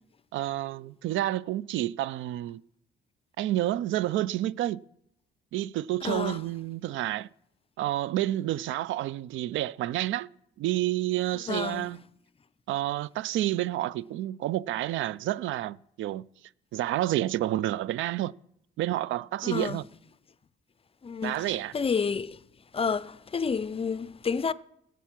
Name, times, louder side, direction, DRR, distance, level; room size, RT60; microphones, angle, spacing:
voice 1, 0.3-2.6 3.4-4.8 5.5-7.3 7.8-10.3 10.6-12.0 12.7-16.2 16.7-18.3 18.8-19.8 21.2-21.7, right 14 dB, 80° right, 0.4 m, -29 dB
voice 2, 6.0-6.4 11.5-11.9 19.4-19.8 21.0-22.4 22.7-24.5, left 5 dB, 30° left, 0.5 m, -30 dB
14.5 x 8.2 x 5.9 m
cardioid pair, 90°, 20 cm